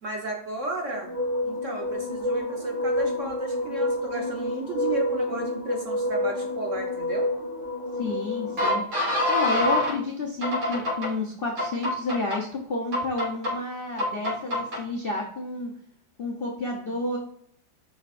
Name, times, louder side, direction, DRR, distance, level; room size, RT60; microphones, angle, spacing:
voice 1, 0.0-1.1 1.4-7.3, right 2 dB, 50° right, 1 dB, 1.1 m, -33 dB
sound 1, 0.9-9.9 10.4-11.1 11.6-12.4 12.9-13.5 14.0-14.8, left 1 dB, 85° right, 3.1 m, -27 dB
voice 2, 7.9-15.7 16.2-17.2, left 2 dB, 55° left, 0 dB, 0.6 m, -31 dB
8.2 x 5.4 x 2.5 m, 0.66 s
omnidirectional pair, 2.2 m